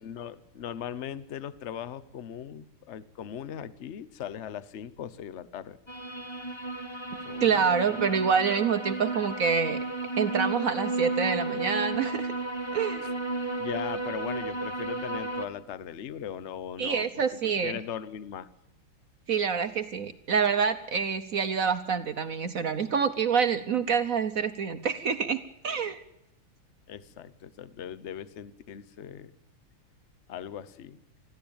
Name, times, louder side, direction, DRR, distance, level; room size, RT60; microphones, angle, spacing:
voice 1, 0.0-5.8 7.2-7.6 8.1-8.2 13.6-18.5 26.9-29.3 30.3-31.0, left 9 dB, 60° left, 16 dB, 0.7 m, -39 dB
sound 1, 5.9-15.5, right 2 dB, 20° left, 0.8 m, -33 dB
voice 2, 7.4-9.8 10.2-12.3 12.7-13.1 16.8-17.8 19.3-26.0, right 6 dB, 60° right, 10 dB, 0.9 m, -27 dB
21.0 x 14.5 x 8.8 m, 0.86 s
omnidirectional pair, 2.4 m